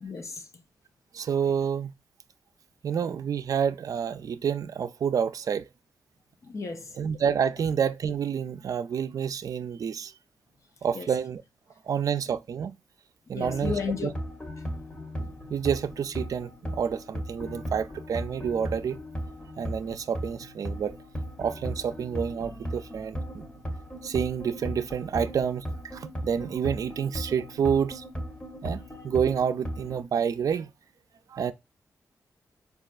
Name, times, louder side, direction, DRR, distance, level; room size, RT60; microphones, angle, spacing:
voice 1, 0.0-0.5 6.4-7.0 10.9-11.1 13.3-14.1, left 5 dB, 50° left, 0.6 m, -33 dB
voice 2, 1.1-1.9 2.8-5.7 7.0-10.1 10.8-11.4 11.9-12.7 13.3-13.7 14.0-14.1 15.2-19.0 19.6-21.0 21.4-23.5 24.0-25.7 25.9-28.0 28.6-30.7 31.3-31.5, right 7 dB, 65° right, 0.3 m, -28 dB
sound 1, 13.4-30.0, equal, 20° left, 1.0 m, -37 dB
4.1 x 2.3 x 2.3 m
cardioid pair, 65°, 7 cm